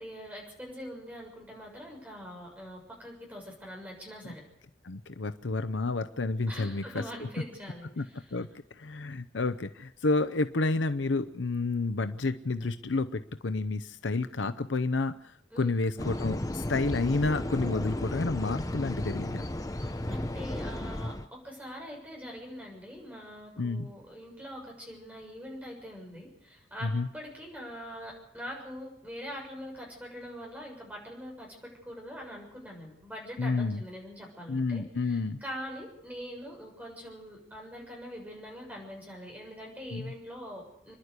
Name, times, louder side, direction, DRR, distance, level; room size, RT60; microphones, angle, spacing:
voice 1, 0.0-4.4 6.5-8.4 15.5-15.7 19.8-40.9, equal, 10° right, -1 dB, 7.1 m, -43 dB
voice 2, 4.8-6.8 8.0-8.1 8.3-8.5 8.8-19.5 23.6-23.9 26.8-27.1 33.4-33.8 34.5-35.4 39.9-40.1, left 3 dB, 80° left, 10 dB, 0.7 m, -30 dB
sound 1, 16.0-21.3, left 1 dB, 20° left, 0.8 m, -34 dB
29.0 x 11.0 x 8.2 m, 0.76 s
head